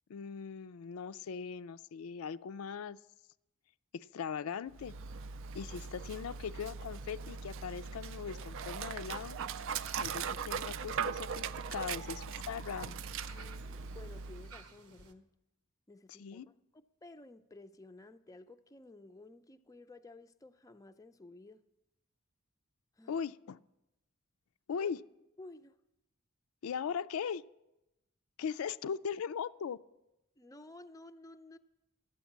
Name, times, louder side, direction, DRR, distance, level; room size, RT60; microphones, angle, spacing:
voice 1, 0.1-3.0 3.9-4.9 5.5-9.4 9.9-13.0 16.1-16.5 23.1-23.6 24.7-25.0 26.6-27.4 28.4-29.8, left 6 dB, 85° left, 12 dB, 0.4 m, -39 dB
Dog, 4.7-14.6, right 6 dB, 65° right, 0.4 m, -40 dB
sound 1, 9.6-15.1, right 5 dB, 90° right, 1.0 m, -56 dB
voice 2, 13.3-15.3 15.9-21.6 23.0-23.2 24.8-24.9 25.4-25.8 30.4-31.6, left 2 dB, 15° left, 8 dB, 0.4 m, -54 dB
12.5 x 8.7 x 7.2 m, 0.92 s
head